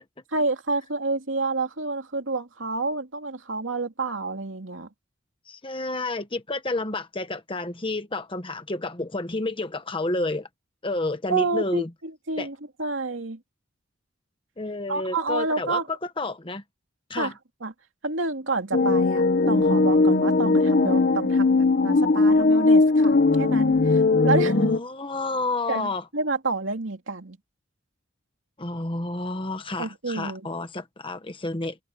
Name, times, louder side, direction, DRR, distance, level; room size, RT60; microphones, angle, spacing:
voice 1, 0.3-4.9 11.3-13.4 14.9-15.9 17.1-17.3 17.6-17.7 18.0-24.6 25.7-27.4 29.8-30.5, right 3 dB, 80° right, 2.6 m, -29 dB
voice 2, 5.5-10.5 10.8-11.9 12.4-12.5 14.6-16.6 17.1-17.3 24.4-26.0 28.6-31.8, left 2 dB, 25° left, 1.3 m, -30 dB
sound 1, 18.7-24.8, left 3 dB, 50° left, 0.8 m, -19 dB
open air
head